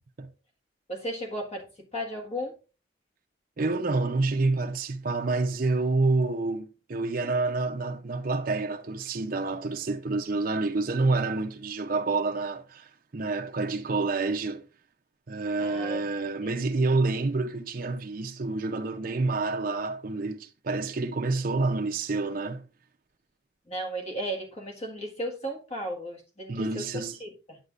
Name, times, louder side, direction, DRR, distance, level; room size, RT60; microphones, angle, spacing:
voice 1, 0.9-2.5 15.6-16.0 16.4-16.5 23.7-26.9 27.2-27.6, right 1 dB, 35° left, 1.7 m, -35 dB
voice 2, 3.6-14.6 15.3-22.7 26.5-27.2, right 3 dB, 50° right, 0.6 m, -28 dB
8.2 x 8.0 x 2.5 m
head